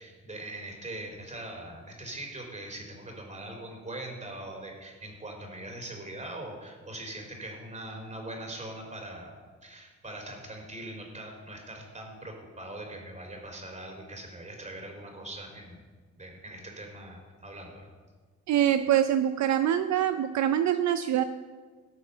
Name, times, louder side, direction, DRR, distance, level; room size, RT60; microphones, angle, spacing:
voice 1, 0.0-9.3 9.6-15.8 16.2-17.9, right 1 dB, 25° right, 2 dB, 3.8 m, -41 dB
voice 2, 18.5-21.2, right 10 dB, 65° right, 10 dB, 0.6 m, -24 dB
18.5 x 6.4 x 5.6 m, 1.5 s
cardioid pair, 90°, 30 cm